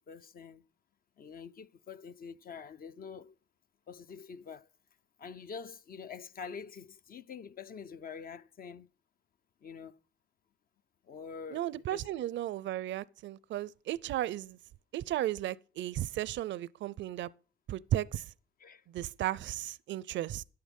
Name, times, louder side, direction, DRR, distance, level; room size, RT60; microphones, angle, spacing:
voice 1, 0.1-0.6 1.2-3.4 3.9-4.7 5.2-8.9 9.6-10.0 11.0-12.0 18.6-18.8, left 6 dB, 45° left, 0.6 m, -46 dB
voice 2, 11.5-14.6 14.9-17.3 17.7-18.3 18.9-20.4, right 13 dB, 70° right, 0.5 m, -35 dB
11.5 x 8.8 x 5.3 m
cardioid pair, 90°, 20 cm